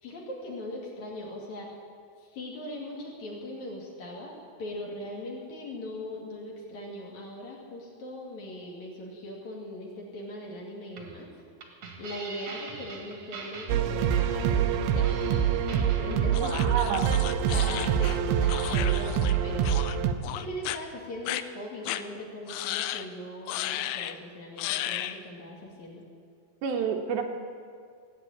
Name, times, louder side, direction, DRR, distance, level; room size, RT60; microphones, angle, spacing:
voice 1, 0.0-1.7 2.2-11.3 12.0-17.1 17.5-19.8 20.2-26.0, left 1 dB, 50° left, -2 dB, 3.1 m, -40 dB
sound 1, 10.9-16.8, right 4 dB, 50° right, 2.0 m, -44 dB
sound 2, 13.7-20.1, right 8 dB, 90° right, 3.0 m, -25 dB
sound 3, 16.3-19.4 19.6-20.0 20.2-20.8 21.3-21.4 21.9-22.0 22.5-23.1 23.5-24.2 24.6-25.2, left 13 dB, 90° left, 2.1 m, -34 dB
voice 2, 16.4-17.2 26.6-27.2, right 7 dB, 75° right, 3 dB, 2.6 m, -29 dB
18.0 x 8.9 x 8.5 m, 2.2 s
omnidirectional pair, 4.8 m